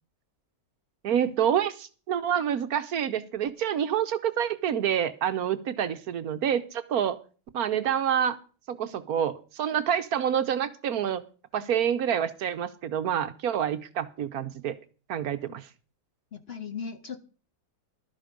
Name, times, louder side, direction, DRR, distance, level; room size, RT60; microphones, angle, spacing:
voice 1, 1.0-7.2 7.5-8.4 8.7-11.2 11.5-14.8 15.1-15.7, right 9 dB, 65° right, 11 dB, 1.2 m, -27 dB
voice 2, 16.3-17.2, left 6 dB, 45° left, 10 dB, 0.9 m, -37 dB
12.5 x 9.5 x 5.2 m, 0.37 s
omnidirectional pair, 1.8 m